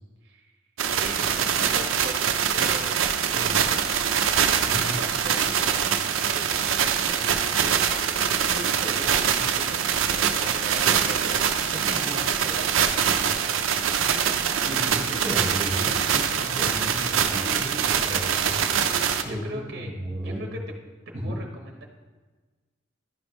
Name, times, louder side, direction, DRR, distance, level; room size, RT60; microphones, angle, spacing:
voice 1, 0.2-0.5 0.9-2.2 2.5-3.3 5.0-6.0 6.3-11.7 12.1-14.6 17.3-18.1 19.2-19.9 20.2-20.6 21.2-21.9, right 2 dB, 55° right, 2 dB, 0.9 m, -41 dB
sound 1, 0.8-19.2, right 8 dB, 85° right, 0.5 m, -24 dB
voice 2, 2.6-3.6 4.7-5.0 9.3-9.4 11.7-12.2 14.6-18.6 19.2-20.6 21.1-21.4, equal, 35° right, -6 dB, 1.3 m, -34 dB
11.0 x 5.1 x 3.1 m, 1.3 s
head